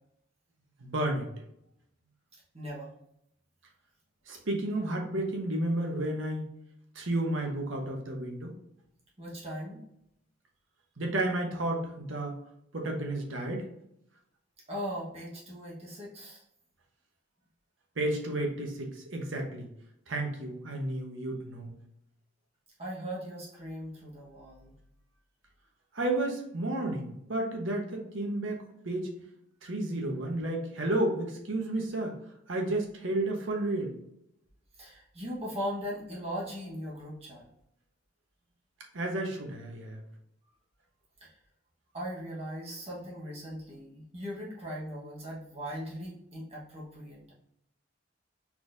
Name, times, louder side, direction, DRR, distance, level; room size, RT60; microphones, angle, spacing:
voice 1, 0.8-1.3 4.3-6.5 6.9-8.5 11.0-12.4 12.7-13.7 18.0-19.7 20.1-21.7 25.9-29.1 29.6-32.2 32.5-33.9 38.9-40.0, right 1 dB, 80° right, 1 dB, 1.1 m, -32 dB
voice 2, 2.5-2.9 9.2-9.8 14.7-16.4 22.8-24.7 29.9-30.0 34.8-37.4 41.2-41.4 41.9-47.3, equal, 30° right, -5 dB, 1.3 m, -39 dB
4.4 x 4.2 x 2.6 m, 0.77 s
head